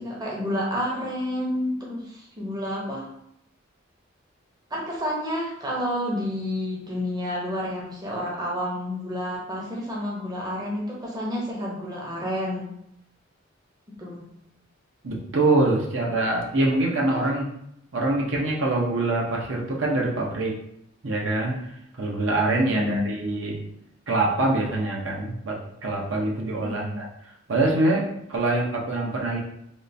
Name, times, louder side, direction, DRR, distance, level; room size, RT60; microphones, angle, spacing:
voice 1, 0.0-3.1 4.7-12.7 14.0-14.3 17.0-17.1 22.5-23.0 26.6-27.0, left 1 dB, 20° right, -4 dB, 0.7 m, -30 dB
voice 2, 15.0-17.5 17.9-20.6 21.0-21.6 22.0-23.6 24.1-27.1 27.5-29.4, right 2 dB, 65° right, -2 dB, 0.7 m, -24 dB
3.5 x 2.5 x 2.6 m, 0.75 s
head